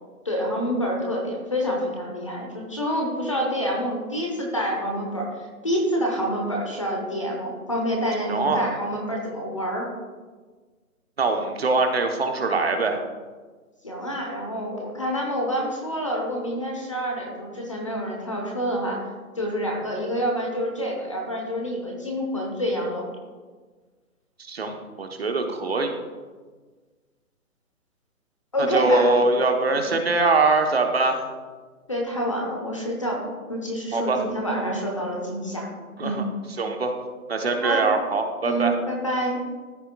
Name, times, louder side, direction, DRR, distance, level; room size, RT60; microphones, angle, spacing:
voice 1, 0.2-5.3 5.6-9.9 13.8-19.0 19.4-23.1 28.5-29.1 29.7-29.9 31.9-33.2 33.5-35.7 36.0-36.2 37.6-37.9 38.4-39.4, equal, 20° left, 0 dB, 0.7 m, -27 dB
voice 2, 8.3-8.6 11.2-13.0 24.4-26.0 28.6-31.3 33.9-34.2 36.0-36.2 36.6-36.9 37.3-38.8, right 3 dB, 45° right, 5 dB, 0.9 m, -23 dB
13.5 x 6.4 x 2.2 m, 1.4 s
hypercardioid pair, 170°, 43 cm